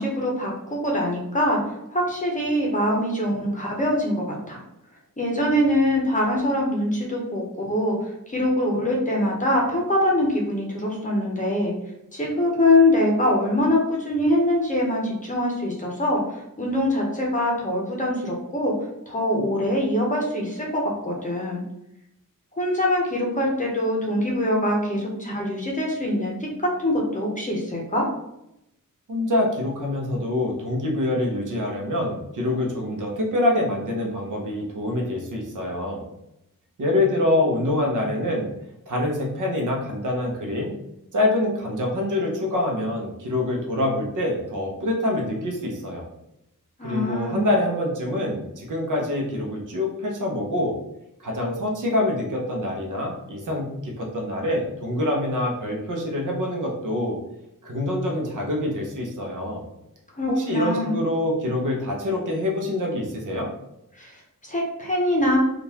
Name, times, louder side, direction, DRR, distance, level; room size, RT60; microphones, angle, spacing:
voice 1, 0.0-1.6 1.9-4.6 5.2-11.7 12.1-18.7 19.1-21.6 22.5-28.1 46.8-47.5 60.2-61.0 64.0-65.4, left 1 dB, 25° left, -2 dB, 0.7 m, -23 dB
voice 2, 29.1-36.0 36.8-38.5 38.9-40.7 41.1-46.1 46.8-50.7 51.2-57.2 57.6-59.7 60.3-63.5, left 1 dB, 65° right, -1 dB, 0.9 m, -25 dB
3.7 x 2.4 x 2.8 m, 0.84 s
wide cardioid pair, 155°, 34 cm